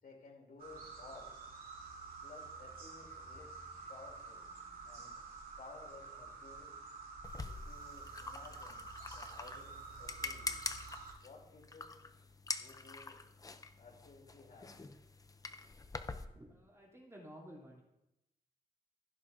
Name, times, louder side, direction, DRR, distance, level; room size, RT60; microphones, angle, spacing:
voice 1, 0.0-1.4 2.2-3.5 3.9-4.5 4.8-5.1 5.6-6.7 7.4-8.8 9.1-10.6 11.2-11.9 12.6-13.2 13.8-14.7, left 3 dB, 65° left, -1 dB, 3.2 m, -56 dB
sound 1, 0.6-11.1, right 4 dB, 55° right, 2.8 m, -49 dB
sound 2, 7.2-16.2, left 3 dB, 20° left, 0.6 m, -45 dB
voice 2, 16.3-17.8, equal, 15° right, -3 dB, 3.2 m, -54 dB
15.0 x 11.0 x 2.7 m, 0.88 s
wide cardioid pair, 140°, 17 cm